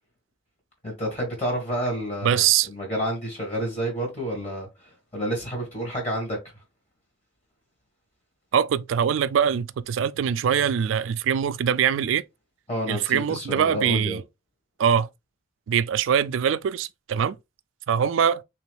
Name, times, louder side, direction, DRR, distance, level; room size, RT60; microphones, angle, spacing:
voice 1, 0.8-6.4 12.7-14.2, equal, 35° left, 1.4 m, -30 dB
voice 2, 2.2-2.7 8.5-12.2 12.9-14.2 14.8-15.1 15.7-17.4 17.9-18.4, right 8 dB, 70° right, 0.3 m, -23 dB
3.4 x 3.0 x 3.3 m
head